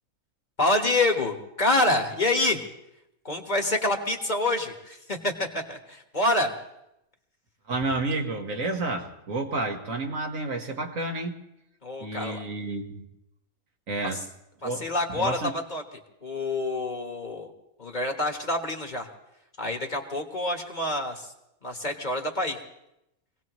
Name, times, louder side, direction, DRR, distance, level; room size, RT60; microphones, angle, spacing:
voice 1, 0.6-2.6 3.2-6.5 11.8-12.4 14.0-14.2 14.6-15.8 16.2-17.5 17.8-19.1 19.6-21.3 21.6-22.6, left 2 dB, 35° left, 3 dB, 1.5 m, -27 dB
voice 2, 7.7-11.4 12.0-13.1 13.9-14.2 14.6-14.9 15.2-15.5, right 2 dB, 75° right, 3 dB, 1.9 m, -30 dB
25.5 x 18.0 x 3.1 m, 0.87 s
omnidirectional pair, 1.4 m